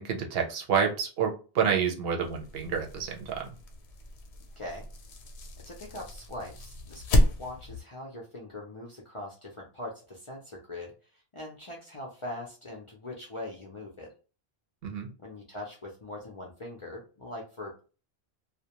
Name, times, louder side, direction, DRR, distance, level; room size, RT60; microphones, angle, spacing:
voice 1, 0.0-3.5 14.8-15.1, right 7 dB, 70° right, 2 dB, 0.8 m, -29 dB
sound 1, 2.2-7.8, left 1 dB, 90° left, 0.9 m, -31 dB
voice 2, 5.6-14.1 15.2-17.8, left 1 dB, 45° left, -2 dB, 0.4 m, -42 dB
2.4 x 2.1 x 2.8 m, 0.35 s
omnidirectional pair, 1.1 m